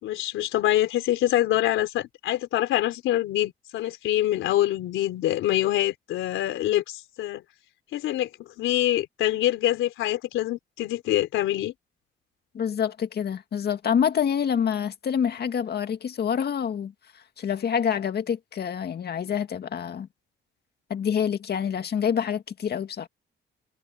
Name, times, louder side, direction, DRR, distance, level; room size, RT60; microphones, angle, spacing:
voice 1, 0.0-7.4 7.9-8.3 8.6-11.7, left 13 dB, 90° left, 3.9 m, -25 dB
voice 2, 12.5-16.9 17.4-20.1 20.9-23.1, left 8 dB, 55° left, 2.1 m, -27 dB
cardioid pair, 90°, 20 cm